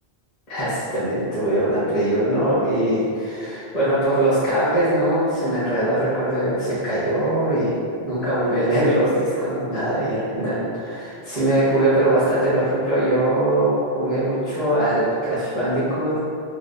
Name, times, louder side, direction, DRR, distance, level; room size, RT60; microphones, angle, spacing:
voice 1, 0.5-7.7 8.0-16.2, right 1 dB, 40° left, -13 dB, 1.2 m, -21 dB
3.3 x 2.0 x 3.8 m, 2.4 s
omnidirectional pair, 1.0 m